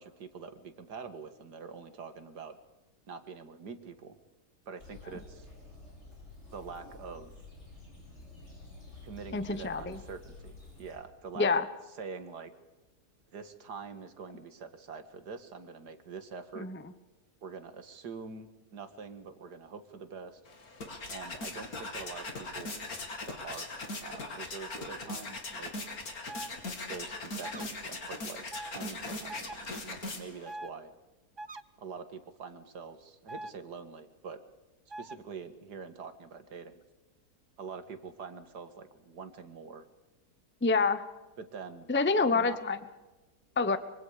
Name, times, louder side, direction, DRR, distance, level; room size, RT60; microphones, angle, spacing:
voice 1, 0.0-2.6 3.1-4.2 4.7-5.5 6.5-7.3 9.0-11.6 12.0-12.5 13.3-16.7 17.4-20.4 21.1-22.8 23.3-23.7 24.0-25.7 26.9-28.4 28.7-30.9 31.8-34.4 35.0-36.8 37.6-39.9 41.4-41.9 42.3-42.6, right 5 dB, 85° right, 9 dB, 2.3 m, -45 dB
sound 1, 4.8-10.9, left 3 dB, 40° left, 6.9 m, -50 dB
voice 2, 9.3-10.0 11.4-11.6 16.6-16.8 40.6-41.0 41.9-42.8 43.6-43.8, left 4 dB, 10° left, 12 dB, 0.8 m, -27 dB
sound 2, 20.5-30.5, left 2 dB, 65° left, 3.2 m, -40 dB
sound 3, 26.3-26.5 27.4-27.6 28.5-28.7 29.3-29.6 30.4-30.7 31.4-31.6 33.3-33.5 34.9-35.2, right 1 dB, 35° right, 0.4 m, -42 dB
24.5 x 24.0 x 5.0 m, 1.1 s
omnidirectional pair, 1.7 m